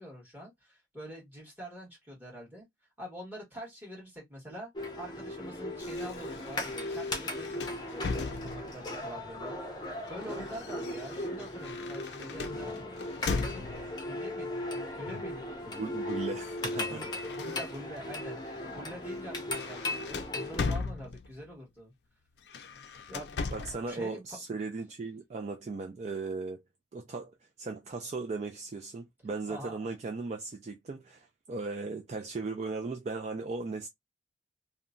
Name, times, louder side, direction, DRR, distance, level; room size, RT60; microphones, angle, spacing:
voice 1, 0.0-2.6 3.0-4.7 5.0-9.8 10.1-12.8 13.3-13.7 14.0-15.9 16.9-18.4 18.7-21.9 23.1-24.4 29.5-29.9, equal, 10° right, 1.4 m, -45 dB
sound 1, 4.7-20.7, left 1 dB, 25° left, 0.6 m, -37 dB
sound 2, 5.8-8.9 9.8-14.0 15.1-15.4 15.7-18.0 18.5-18.7 19.1-21.5 22.4-23.9, left 4 dB, 65° left, 0.4 m, -39 dB
voice 2, 15.8-17.0 23.5-26.6 26.9-33.9, right 3 dB, 40° right, 0.3 m, -37 dB
2.8 x 2.2 x 2.5 m
head